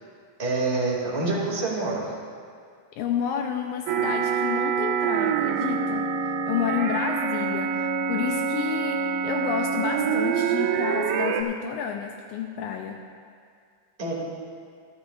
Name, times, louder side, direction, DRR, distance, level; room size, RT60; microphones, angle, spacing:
voice 1, 0.4-2.1 14.0-14.1, right 3 dB, 20° right, -4 dB, 2.0 m, -26 dB
voice 2, 2.9-13.0, left 8 dB, 80° left, 3 dB, 1.8 m, -30 dB
sound 1, 3.9-11.4, right 6 dB, 90° right, 2.3 m, -26 dB
26.0 x 9.5 x 2.4 m, 2.2 s
omnidirectional pair, 3.9 m